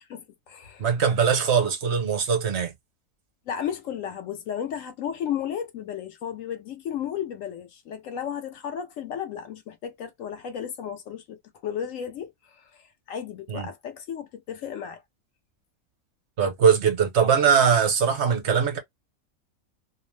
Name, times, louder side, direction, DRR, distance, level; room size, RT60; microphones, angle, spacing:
voice 1, 0.1-0.9 3.5-15.0, left 9 dB, 70° left, 0.9 m, -34 dB
voice 2, 0.8-2.7 13.5-13.7 16.4-18.8, right 7 dB, 55° right, 1.1 m, -21 dB
2.7 x 2.0 x 3.1 m
omnidirectional pair, 1.5 m